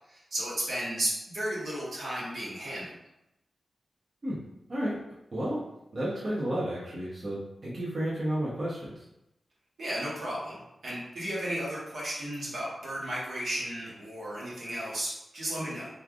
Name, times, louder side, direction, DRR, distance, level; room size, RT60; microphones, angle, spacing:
voice 1, 0.3-2.9 9.8-15.9, right 1 dB, 85° right, -7 dB, 1.1 m, -34 dB
voice 2, 5.3-5.6 5.9-9.0, right 1 dB, 55° right, -7 dB, 0.8 m, -32 dB
3.2 x 2.5 x 2.3 m, 0.86 s
cardioid pair, 65°, 0 cm